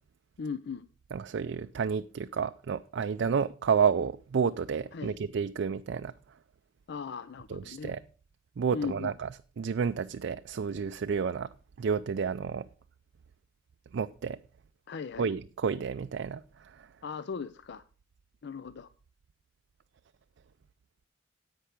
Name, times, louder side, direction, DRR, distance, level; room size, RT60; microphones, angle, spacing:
voice 1, 0.4-0.9 4.9-5.2 6.9-7.9 8.7-9.1 14.9-15.3 17.0-17.8 18.4-18.9, left 5 dB, 60° left, 0.4 m, -38 dB
voice 2, 1.1-6.4 7.5-8.0 8.6-9.3 9.6-12.7 13.9-14.4 15.2-16.9, right 6 dB, 60° right, 0.4 m, -30 dB
10.0 x 8.3 x 5.0 m
head